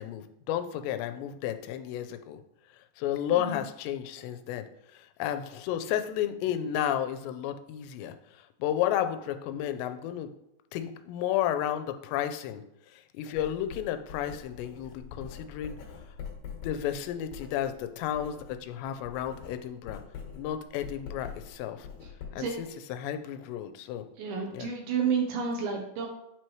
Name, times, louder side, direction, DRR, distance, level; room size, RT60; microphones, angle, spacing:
voice 1, 0.0-2.4 3.0-4.7 4.9-8.1 8.6-10.3 10.7-12.6 12.9-15.8 16.6-20.0 20.4-21.9 22.3-24.1 24.5-24.7, left 11 dB, 90° left, 9 dB, 2.8 m, -32 dB
Writing, 13.4-18.6 18.9-22.6, left 7 dB, 65° left, 2.5 m, -44 dB
voice 2, 24.2-26.1, right 6 dB, 75° right, 2 dB, 2.4 m, -30 dB
8.4 x 4.4 x 3.1 m, 0.82 s
omnidirectional pair, 4.9 m